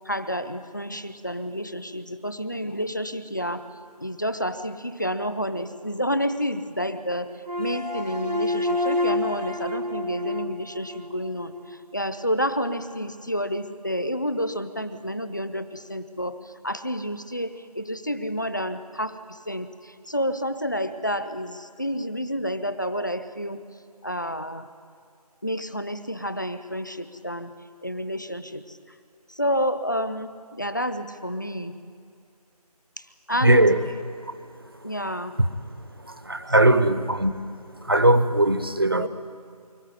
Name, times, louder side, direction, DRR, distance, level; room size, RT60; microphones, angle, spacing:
voice 1, 0.1-3.7 4.0-7.3 7.6-16.4 16.6-23.6 24.0-24.7 25.4-27.5 27.8-28.8 29.3-31.7 33.0-33.8 34.8-35.3 36.6-37.0 39.0-39.1, equal, 30° left, 0.6 m, -29 dB
sound 1, 7.4-11.8, left 2 dB, 90° right, 1.9 m, -29 dB
voice 2, 33.4-33.8 36.1-37.3 37.8-39.1, right 1 dB, 35° right, 0.7 m, -19 dB
24.0 x 14.0 x 9.7 m
figure-of-eight pair, 175°, 20 cm